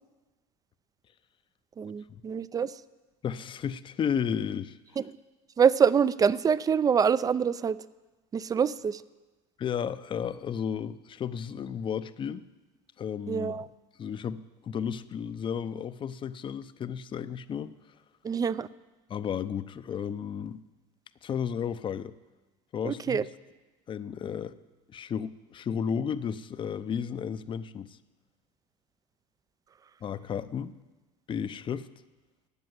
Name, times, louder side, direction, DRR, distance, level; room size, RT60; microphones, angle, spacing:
voice 1, 1.8-2.7 5.0-5.1 5.6-7.8 8.3-9.0 13.3-13.7 18.2-18.7 22.8-23.3, right 7 dB, 20° right, 18 dB, 0.5 m, -25 dB
voice 2, 3.2-4.8 9.6-12.4 13.0-13.6 14.0-14.4 14.6-17.7 19.1-20.6 21.2-22.1 22.7-23.2 23.9-24.5 24.9-28.0 30.0-30.7 31.3-31.9, left 7 dB, 30° left, 14 dB, 0.6 m, -33 dB
13.5 x 8.6 x 9.4 m, 1.2 s
supercardioid pair, 110°, 16 cm